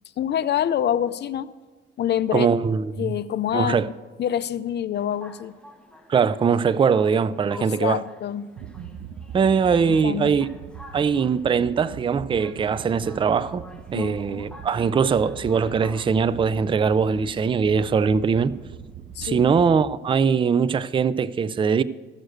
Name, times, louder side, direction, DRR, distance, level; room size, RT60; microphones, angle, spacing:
voice 1, 0.2-1.5 2.0-2.5 3.0-3.8 4.2-5.6 7.6-8.5 9.9-10.3 13.9-14.4 19.2-19.5, left 10 dB, 60° left, 0.6 m, -26 dB
voice 2, 2.3-3.1 3.5-3.9 6.1-8.0 9.3-10.5 10.9-13.6 13.9-18.5 19.2-21.8, right 6 dB, 25° right, 0.4 m, -21 dB
sound 1, 4.9-19.8, equal, 5° left, 1.1 m, -49 dB
sound 2, 8.6-19.8, right 8 dB, 65° right, 0.6 m, -41 dB
15.0 x 6.5 x 6.4 m
cardioid pair, 90°, 20 cm